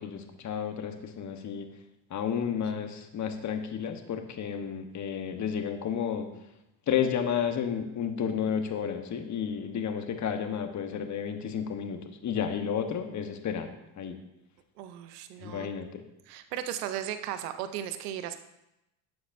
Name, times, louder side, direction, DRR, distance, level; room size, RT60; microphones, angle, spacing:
voice 1, 0.0-1.7 2.1-6.3 6.9-13.7 13.9-14.2 15.4-16.0, left 8 dB, 40° left, 6 dB, 1.2 m, -32 dB
voice 2, 14.8-15.7 16.3-18.4, right 11 dB, 80° right, 10 dB, 0.8 m, -36 dB
12.0 x 7.9 x 2.7 m, 0.89 s
supercardioid pair, 85°, 46 cm